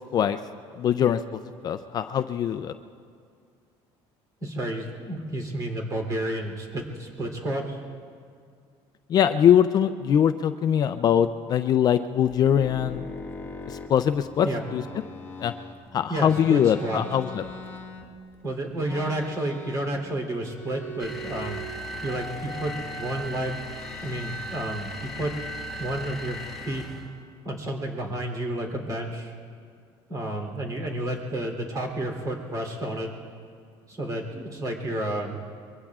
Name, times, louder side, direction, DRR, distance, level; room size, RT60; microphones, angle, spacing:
voice 1, 0.8-1.2 1.6-2.7 9.1-13.0 13.7-14.8 15.4-15.5 15.9-17.4, left 9 dB, 35° left, 10 dB, 0.4 m, -22 dB
voice 2, 4.4-7.8 14.4-14.6 16.1-17.0 18.4-21.6 22.0-23.6 24.0-25.3 25.8-26.3 26.6-26.9 27.4-29.3 30.1-33.1 33.9-35.4, right 1 dB, 30° right, 2 dB, 3.2 m, -31 dB
sound 1, 12.2-15.8 16.2-18.4 18.8-20.1 20.4-21.7 22.1-23.2 23.8-24.7 24.9-26.1, left 1 dB, 20° left, 1.2 m, -41 dB
sound 2, 21.0-27.2, equal, ahead, 1.8 m, -37 dB
25.0 x 23.0 x 2.4 m, 2.2 s
cardioid pair, 145°, 11 cm